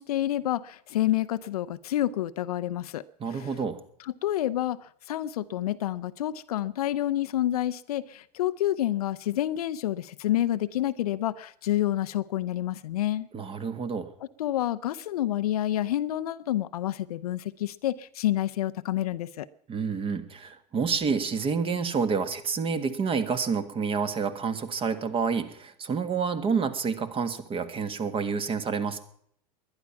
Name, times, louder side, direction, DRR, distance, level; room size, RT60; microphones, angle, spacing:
voice 1, 0.0-3.0 3.3-3.5 4.2-13.3 14.4-19.5, left 13 dB, 65° left, 14 dB, 0.7 m, -28 dB
voice 2, 3.2-3.8 13.3-14.1 19.7-29.0, right 5 dB, 25° right, 11 dB, 1.6 m, -28 dB
21.0 x 10.5 x 5.8 m, 0.67 s
figure-of-eight pair, 85°, 21 cm